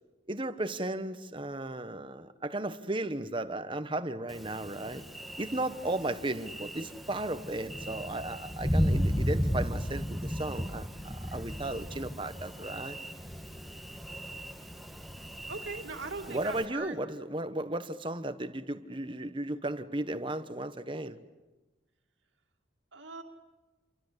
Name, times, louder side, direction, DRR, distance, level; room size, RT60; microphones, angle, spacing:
voice 1, 0.3-5.0 5.4-13.0 16.3-21.2, right 1 dB, 25° right, 11 dB, 1.2 m, -35 dB
Thunder, 4.3-16.7, equal, ahead, 1.4 m, -35 dB
voice 2, 15.5-17.0 22.9-23.2, right 3 dB, 80° right, 3 dB, 2.6 m, -40 dB
28.5 x 24.0 x 8.2 m, 1.2 s
head